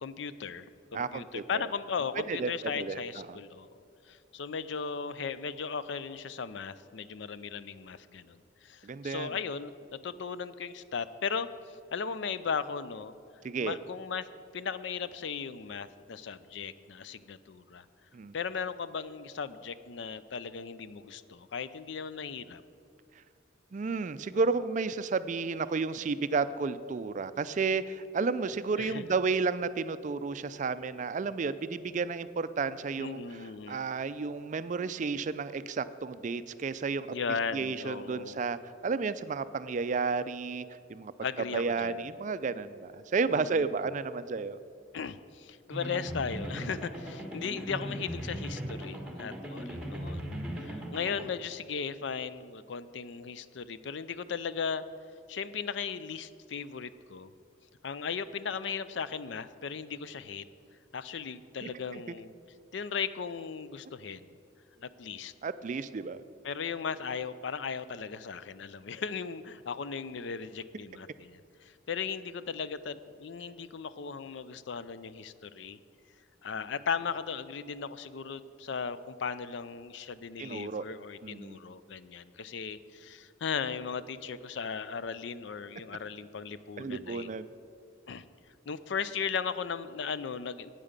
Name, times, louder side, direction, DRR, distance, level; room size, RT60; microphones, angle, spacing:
voice 1, 0.0-3.7 4.1-13.1 13.6-14.3 14.5-17.9 18.3-22.6 28.8-29.0 33.0-33.9 37.1-38.4 41.2-42.1 43.3-43.8 44.9-54.8 55.3-57.3 57.8-60.4 60.9-62.3 62.7-64.3 64.8-65.3 66.4-75.8 76.4-87.3 88.1-88.2 88.7-90.7, left 6 dB, 65° left, 14 dB, 0.4 m, -37 dB
voice 2, 0.9-1.7 2.3-3.4 8.8-9.3 13.4-13.8 18.1-18.4 23.7-33.4 33.7-37.1 37.5-40.6 40.9-41.1 41.5-44.6 61.6-62.0 65.4-66.2 80.4-80.8 81.2-81.6 86.8-87.5, right 4 dB, 40° right, 14 dB, 0.4 m, -32 dB
sound 1, 45.7-51.2, equal, 5° right, 1.3 m, -38 dB
9.0 x 8.7 x 6.7 m, 2.5 s
head